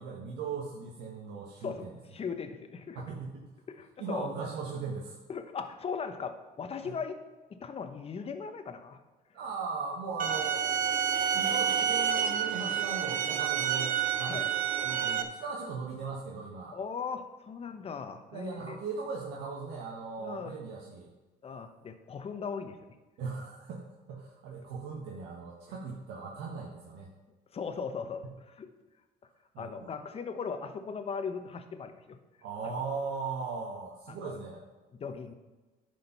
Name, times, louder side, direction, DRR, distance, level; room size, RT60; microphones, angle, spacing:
voice 1, 0.0-1.9 2.9-3.5 4.0-5.2 6.8-6.9 9.3-10.7 11.3-14.4 14.8-16.8 18.3-21.1 23.2-23.8 24.1-27.1 29.5-29.9 32.4-34.6, right 4 dB, 80° right, -2 dB, 1.5 m, -38 dB
voice 2, 1.6-3.0 3.7-4.3 5.3-7.2 7.5-9.0 14.3-14.5 16.7-18.8 20.2-20.5 21.4-22.8 27.5-28.7 29.6-32.2 34.1-34.4 35.0-35.3, left 5 dB, 35° left, 8 dB, 1.0 m, -38 dB
sound 1, 10.2-15.2, right 8 dB, 55° right, 0.8 m, -29 dB
10.5 x 5.1 x 5.9 m, 1.2 s
cardioid pair, 110°, 17 cm